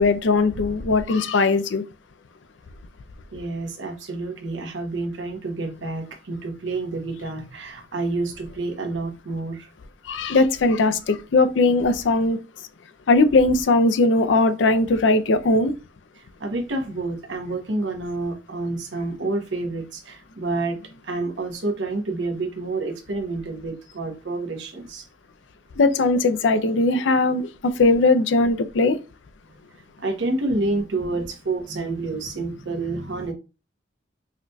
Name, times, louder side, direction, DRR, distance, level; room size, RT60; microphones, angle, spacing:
voice 1, 0.0-1.8 10.1-12.4 13.1-15.7 25.8-29.0, left 3 dB, 90° left, 0.5 m, -19 dB
voice 2, 3.3-9.7 16.4-20.8 21.0-25.0 30.0-33.3, right 2 dB, 85° right, 0.9 m, -28 dB
4.9 x 2.6 x 2.2 m
head